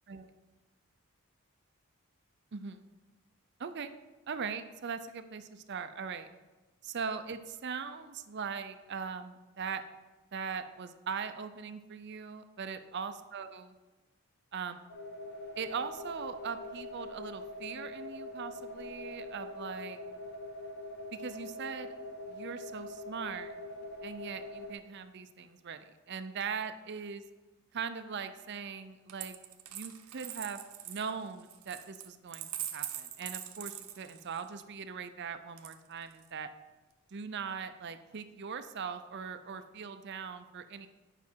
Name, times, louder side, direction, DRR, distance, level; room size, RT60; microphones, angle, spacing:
voice 1, 2.5-2.9 3.6-3.9 4.3-6.3 6.8-9.8 10.3-13.8 14.5-14.8 15.6-20.0 21.1-21.9 22.3-23.5 24.0-27.2 27.7-29.4 29.7-36.5 37.1-40.9, right 6 dB, 50° right, 10 dB, 0.5 m, -40 dB
sound 1, 14.9-24.7, left 1 dB, 45° left, 0.8 m, -43 dB
Coin (dropping), 29.1-34.5 35.6-36.3, right 11 dB, 80° right, 0.8 m, -43 dB
9.4 x 5.8 x 4.5 m, 1.2 s
head